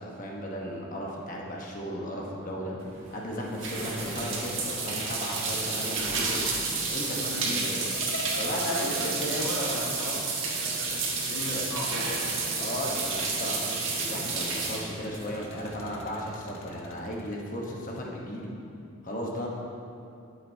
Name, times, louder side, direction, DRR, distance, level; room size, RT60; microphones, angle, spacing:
voice 1, 0.0-2.8 3.1-6.5 6.9-7.8 8.3-10.2 11.5-11.6 12.6-18.5 19.0-19.5, equal, 35° left, -2 dB, 1.1 m, -35 dB
sound 1, 2.8-16.0, right 4 dB, 55° right, 1.5 m, -31 dB
sound 2, 7.7-10.4 11.7-13.2 13.8-18.0, left 1 dB, 65° left, 0.7 m, -43 dB
voice 2, 8.7-10.1 10.5-12.5 15.8-15.9, left 2 dB, 80° left, -6 dB, 1.7 m, -38 dB
12.5 x 7.4 x 2.8 m, 2.6 s
head